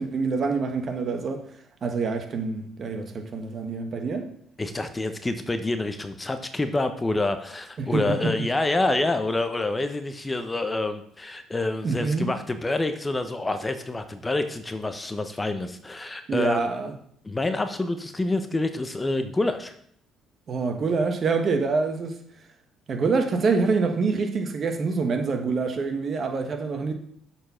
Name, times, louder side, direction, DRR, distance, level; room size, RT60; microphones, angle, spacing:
voice 1, 0.0-1.5 1.8-4.3 7.8-8.3 11.8-12.3 16.3-16.9 20.5-22.2 22.9-26.9, right 4 dB, 50° right, 1.4 m, -26 dB
voice 2, 4.6-16.7 17.2-19.7, left 2 dB, 20° left, 0.9 m, -27 dB
7.7 x 4.6 x 5.7 m
supercardioid pair, 70°, 0 cm